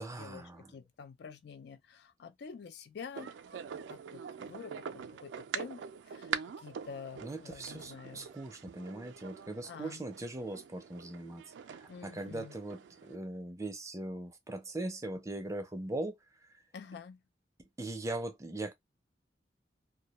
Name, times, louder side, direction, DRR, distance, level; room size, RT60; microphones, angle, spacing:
voice 1, 0.0-0.8 7.2-12.8 13.1-16.1 17.8-18.7, right 2 dB, 20° right, 0.4 m, -40 dB
voice 2, 0.7-3.6 3.9-6.3 6.6-8.3 9.6-10.0 11.9-12.5 16.7-17.2, left 6 dB, 65° left, 0.4 m, -48 dB
sound 1, 3.2-13.2, right 7 dB, 90° right, 0.3 m, -44 dB
2.2 x 2.1 x 2.8 m
head